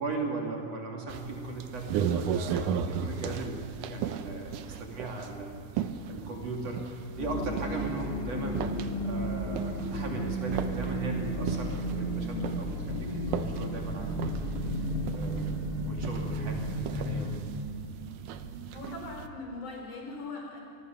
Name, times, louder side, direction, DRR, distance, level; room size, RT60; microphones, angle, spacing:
voice 1, 0.0-14.9 15.1-15.4 15.9-17.5, right 3 dB, 55° right, 0 dB, 3.6 m, -38 dB
sound 1, 1.1-19.3, right 8 dB, 85° right, 2.5 m, -37 dB
sound 2, 7.2-17.4, equal, 25° left, 1.5 m, -33 dB
voice 2, 18.7-20.6, left 3 dB, 70° left, 0 dB, 5.6 m, -40 dB
25.0 x 20.5 x 7.0 m, 2.5 s
omnidirectional pair, 3.6 m